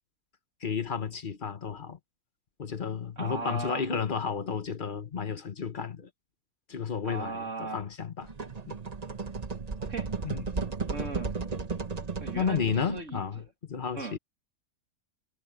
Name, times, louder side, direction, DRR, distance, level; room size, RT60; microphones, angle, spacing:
voice 1, 0.6-2.0 2.6-6.1 6.7-8.3 8.7-8.8 10.2-10.4 12.3-14.2, left 6 dB, 35° left, 1.2 m, -32 dB
voice 2, 3.2-3.9 7.0-7.8 9.8-10.1 10.9-11.4 12.2-13.4 13.9-14.2, right 3 dB, 55° right, 3.1 m, -38 dB
sound 1, 8.2-13.1, right 4 dB, 30° right, 1.1 m, -34 dB
omnidirectional pair, 1.5 m